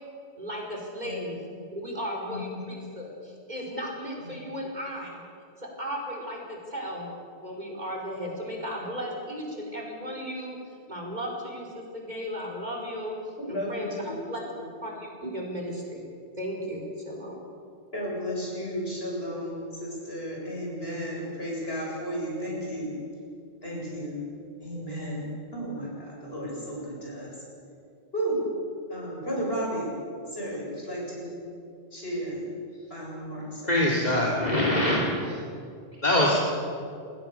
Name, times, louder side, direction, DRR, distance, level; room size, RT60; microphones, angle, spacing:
voice 1, 0.4-1.4 1.7-5.2 5.6-7.1 7.4-10.6 10.9-13.2 13.5-13.9 14.3-14.4 14.8-16.1 16.4-17.4, equal, 40° right, -1 dB, 5.3 m, -35 dB
voice 2, 2.3-2.6 13.5-14.2 14.5-14.7 17.9-23.0 23.6-24.2 24.6-25.3 25.5-27.4 28.1-28.4 28.9-29.9 30.3-31.4 31.9-32.4 32.9-33.7, equal, 65° left, -3 dB, 8.1 m, -33 dB
voice 3, 33.7-35.3 36.0-36.4, left 1 dB, 40° left, -3 dB, 3.0 m, -23 dB
28.5 x 20.0 x 7.0 m, 2.4 s
omnidirectional pair, 1.1 m